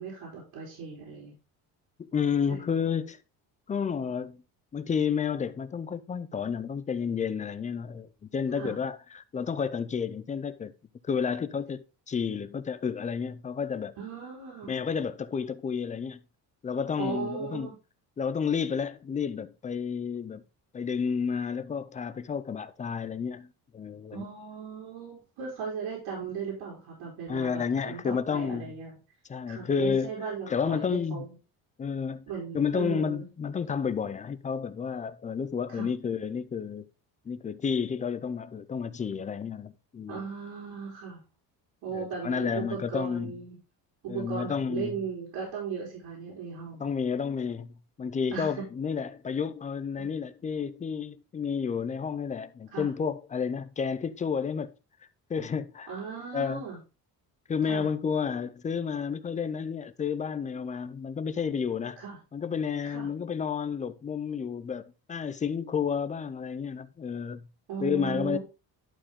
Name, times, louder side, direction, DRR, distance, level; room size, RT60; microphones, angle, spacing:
voice 1, 0.0-1.4 2.5-2.6 8.5-8.8 14.0-14.7 17.0-17.7 24.1-29.0 29.5-31.3 32.3-33.3 35.7-35.9 40.1-41.2 41.8-43.6 44.0-46.9 48.3-48.5 50.0-50.1 52.7-52.9 55.9-56.8 57.7-57.9 62.0-62.2 62.8-63.1 67.7-68.4, right 5 dB, 90° right, 3.9 m, -37 dB
voice 2, 2.0-3.2 3.7-4.4 4.7-10.7 11.0-13.9 14.7-16.2 16.6-17.7 18.2-20.4 20.7-23.5 23.7-24.2 27.3-28.7 29.3-30.1 30.5-31.2 31.8-32.3 32.5-36.9 37.3-40.2 41.9-43.3 44.1-44.9 46.8-47.7 48.0-54.7 55.3-55.9 56.3-56.6 57.5-62.0 62.3-67.4 67.8-68.4, left 6 dB, 20° left, 0.4 m, -31 dB
11.5 x 4.6 x 3.6 m
cardioid pair, 155°, 38 cm